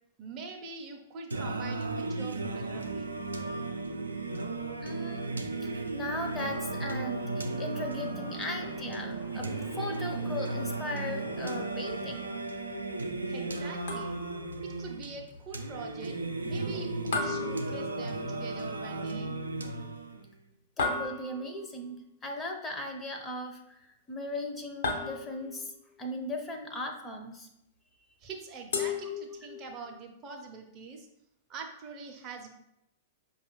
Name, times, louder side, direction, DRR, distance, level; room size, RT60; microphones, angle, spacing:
voice 1, 0.2-3.2 13.3-14.2 14.6-19.3 28.2-31.1 31.5-32.5, right 4 dB, 30° right, 1 dB, 0.6 m, -44 dB
Singing, 1.3-20.3, right 2 dB, 85° right, 0.4 m, -35 dB
voice 2, 4.8-5.3 5.6-12.7 16.7-16.9 17.3-17.5 20.8-25.7 26.0-27.5 29.4-29.5, left 1 dB, 20° left, 3 dB, 0.5 m, -38 dB
sound 1, 13.9-14.5 17.1-18.4 20.8-21.7 24.8-25.7 28.7-29.7, left 4 dB, 65° left, 0.6 m, -34 dB
5.3 x 2.3 x 3.0 m, 0.83 s
figure-of-eight pair, 100°, 0 cm